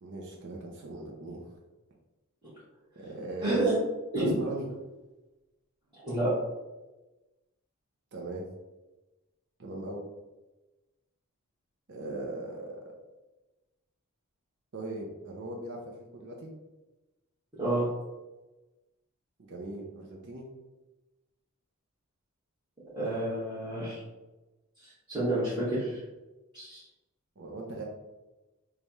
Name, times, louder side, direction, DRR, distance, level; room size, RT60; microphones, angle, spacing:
voice 1, 0.0-1.6 3.0-3.6 4.2-4.7 8.1-8.5 9.6-10.0 11.9-12.8 14.7-16.5 19.5-20.5 27.4-27.8, right 2 dB, 55° right, -1 dB, 0.6 m, -39 dB
voice 2, 3.4-3.8 4.1-4.4 5.9-6.3 17.6-17.9 22.9-24.0 24.8-26.0 26.5-26.8, right 2 dB, 20° right, -14 dB, 1.4 m, -29 dB
3.3 x 2.3 x 4.1 m, 1.1 s
head